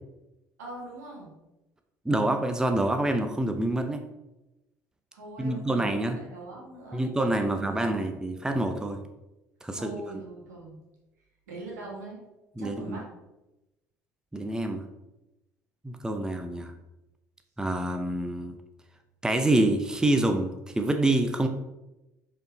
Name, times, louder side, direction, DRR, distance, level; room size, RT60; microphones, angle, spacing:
voice 1, 0.6-1.3 5.1-7.0 7.4-8.1 9.7-10.8 11.5-12.2 12.6-13.1, right 2 dB, 80° right, -3 dB, 1.9 m, -42 dB
voice 2, 2.0-4.0 5.4-6.2 6.9-9.0 9.6-10.0 12.6-13.0 14.3-14.8 15.8-16.7 17.6-18.6 19.2-21.5, right 1 dB, 10° right, 6 dB, 0.6 m, -26 dB
5.3 x 4.4 x 4.0 m, 0.97 s
hypercardioid pair, 60°, 9 cm